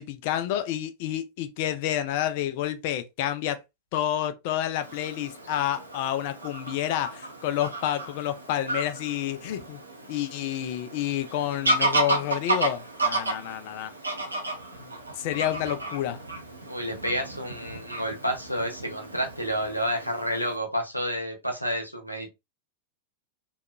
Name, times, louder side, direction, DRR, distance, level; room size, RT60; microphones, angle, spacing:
voice 1, 0.0-3.6 3.9-9.8 10.1-13.9 14.8-16.2, left 11 dB, 50° left, 0.4 m, -29 dB
Fowl / Bird vocalization bird call bird song, 4.8-20.5, right 2 dB, 80° right, 0.6 m, -33 dB
voice 2, 16.7-22.3, equal, 90° left, 0.7 m, -30 dB
2.8 x 2.3 x 2.2 m
figure-of-eight pair, 90°, 0 cm